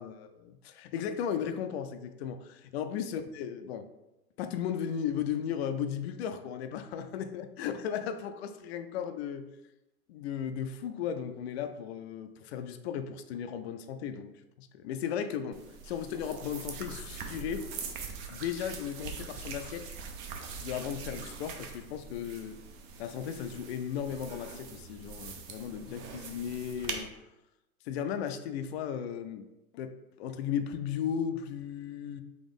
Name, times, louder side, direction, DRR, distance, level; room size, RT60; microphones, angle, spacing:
voice 1, 0.0-3.9 4.4-9.5 10.1-14.3 14.6-15.6 15.8-17.7 18.3-19.8 20.6-22.6 23.0-27.1 27.9-29.5 29.7-32.2, left 8 dB, 45° left, 9 dB, 0.4 m, -35 dB
sound 1, 15.5-27.0, right 5 dB, 30° right, 0.4 m, -43 dB
4.1 x 3.0 x 3.5 m, 0.96 s
hypercardioid pair, 105°, 44 cm